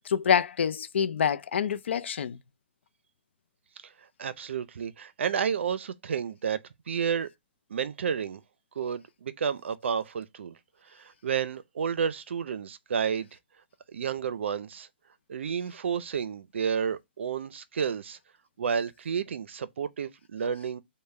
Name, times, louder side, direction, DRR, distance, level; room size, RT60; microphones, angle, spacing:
voice 1, 0.1-2.4, left 8 dB, 80° left, 0.5 m, -26 dB
voice 2, 4.2-6.6 6.9-7.3 7.7-8.4 8.8-10.6 10.9-13.3 13.9-14.9 15.3-18.2 18.6-20.8, right 7 dB, 85° right, 0.5 m, -31 dB
5.3 x 2.1 x 4.7 m
hypercardioid pair, 160°, 6 cm